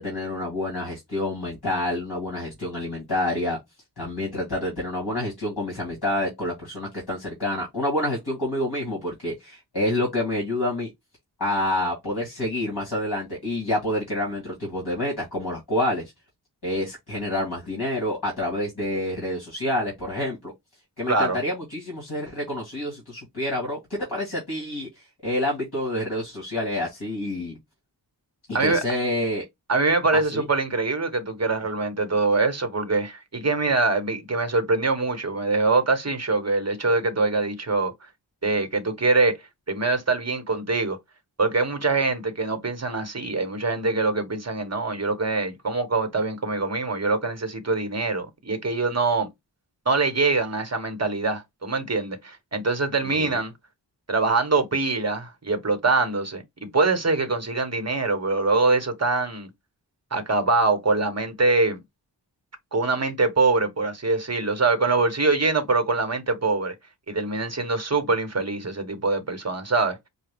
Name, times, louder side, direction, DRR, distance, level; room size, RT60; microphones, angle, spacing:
voice 1, 0.0-3.6 4.0-10.9 11.4-16.1 16.6-20.5 21.0-27.6 28.5-29.4 30.3-30.4 53.0-53.4, left 1 dB, 60° left, 2.0 m, -28 dB
voice 2, 28.5-28.8 29.7-37.9 38.4-39.4 39.7-41.0 41.4-49.3 49.9-53.5 54.1-59.5 60.1-61.8 62.7-66.7 67.1-70.0, right 3 dB, 35° right, 1.0 m, -24 dB
4.9 x 2.2 x 3.4 m
wide cardioid pair, 60°, 43 cm